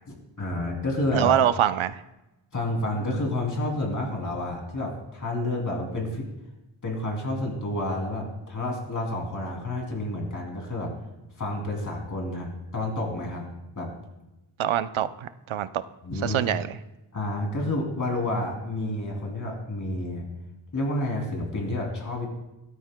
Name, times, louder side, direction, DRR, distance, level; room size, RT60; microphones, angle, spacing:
voice 1, 0.1-1.3 2.5-6.3 6.8-11.0 11.4-13.4 13.7-13.9 16.0-16.4 17.1-20.3 20.7-22.3, left 1 dB, 40° left, 0 dB, 2.8 m, -29 dB
voice 2, 1.1-2.0 14.6-15.7 16.2-16.8, right 10 dB, 90° right, 13 dB, 0.6 m, -24 dB
18.5 x 12.5 x 2.2 m, 0.97 s
wide cardioid pair, 160°, 46 cm